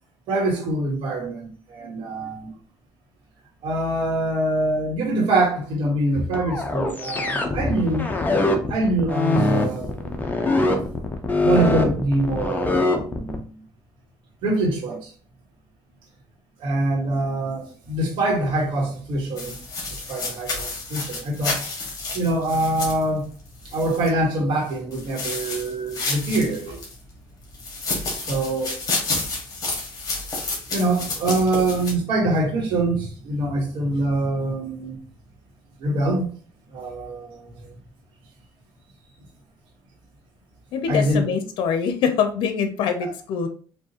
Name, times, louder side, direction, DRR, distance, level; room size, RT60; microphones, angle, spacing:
voice 1, 0.3-2.5 3.6-8.1 8.7-10.2 11.4-13.5 14.4-15.1 16.6-19.6 19.9-21.6 22.1-23.3 23.6-26.8 28.3-28.8 30.7-35.0 35.8-36.3 36.7-37.7 40.9-41.3 43.0-43.1, right 2 dB, 75° right, 1.7 m, -24 dB
sound 1, 6.3-13.4, left 2 dB, 20° left, 0.8 m, -22 dB
sound 2, 19.4-24.1 24.9-27.0 27.5-31.9, left 3 dB, 45° left, 1.7 m, -30 dB
voice 2, 40.7-43.5, left 6 dB, 75° left, 0.7 m, -24 dB
4.5 x 2.7 x 2.9 m
cardioid pair, 100°, 8 cm